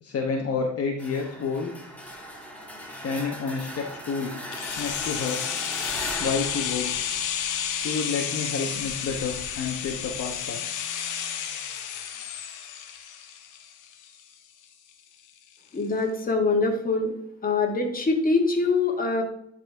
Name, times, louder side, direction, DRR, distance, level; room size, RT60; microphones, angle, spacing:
voice 1, 0.0-1.7 3.0-4.4 4.8-5.4 6.2-6.9 7.7-10.6, left 5 dB, 50° left, 1 dB, 1.1 m, -29 dB
sound 1, 1.0-7.7, equal, 5° left, 1.6 m, -39 dB
sound 2, 4.5-14.3 14.6-14.7, left 8 dB, 90° left, 1.0 m, -31 dB
voice 2, 15.7-17.1 17.4-19.2, left 3 dB, 30° left, 2 dB, 1.7 m, -24 dB
10.5 x 4.3 x 3.5 m, 0.73 s
cardioid pair, 90°, 30 cm